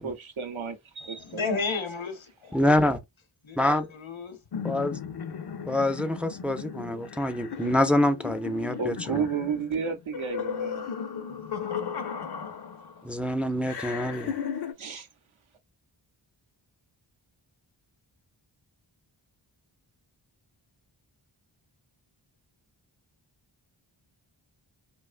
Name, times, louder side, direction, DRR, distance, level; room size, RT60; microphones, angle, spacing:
voice 1, 0.0-1.6 8.8-10.9 14.8-15.1, right 6 dB, 75° right, 0.7 m, -32 dB
voice 2, 1.3-2.7 3.4-4.4, left 4 dB, 70° left, 0.8 m, -32 dB
voice 3, 2.5-3.0 3.6-3.9 4.6-5.0 5.7-9.2 13.0-14.3, left 1 dB, 5° right, 0.3 m, -26 dB
sound 1, 4.5-13.1 13.6-14.7, left 7 dB, 55° left, 0.5 m, -36 dB
2.7 x 2.1 x 2.4 m
wide cardioid pair, 40°, 49 cm